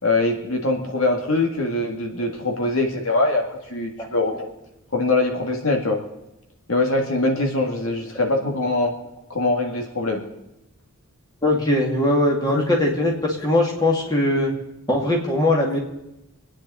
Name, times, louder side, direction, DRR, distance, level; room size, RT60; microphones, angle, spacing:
voice 1, 0.0-4.5 4.9-6.0 6.7-9.0 9.3-10.2 12.5-12.6, left 2 dB, 70° left, 2 dB, 2.0 m, -23 dB
voice 2, 11.4-14.5 14.9-15.8, left 1 dB, 15° left, -1 dB, 2.5 m, -20 dB
27.5 x 9.8 x 4.2 m, 0.90 s
head